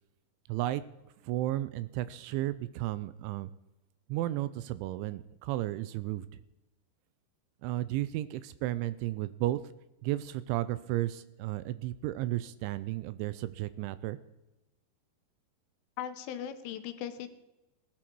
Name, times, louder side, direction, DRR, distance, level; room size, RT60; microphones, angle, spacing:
voice 1, 0.5-0.8 1.2-3.5 4.1-6.3 7.6-9.6 10.0-14.2, right 15 dB, 85° right, 15 dB, 2.9 m, -33 dB
voice 2, 16.0-17.3, left 10 dB, 80° left, 9 dB, 3.4 m, -38 dB
18.0 x 11.5 x 4.6 m, 0.97 s
omnidirectional pair, 5.6 m